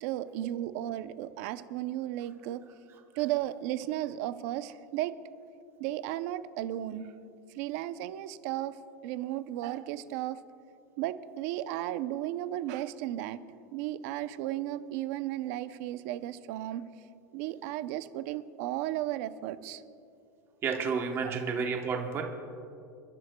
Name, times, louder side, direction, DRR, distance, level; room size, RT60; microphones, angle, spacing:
voice 1, 0.0-2.6 3.2-5.1 5.8-7.1 7.5-10.4 11.0-13.4 13.7-16.9 17.3-19.8 21.2-21.4, right 13 dB, 55° right, 12 dB, 0.6 m, -34 dB
voice 2, 20.6-22.2, right 5 dB, 25° right, 2 dB, 1.0 m, -31 dB
29.5 x 11.0 x 2.3 m, 2.6 s
supercardioid pair, 150°, 10 cm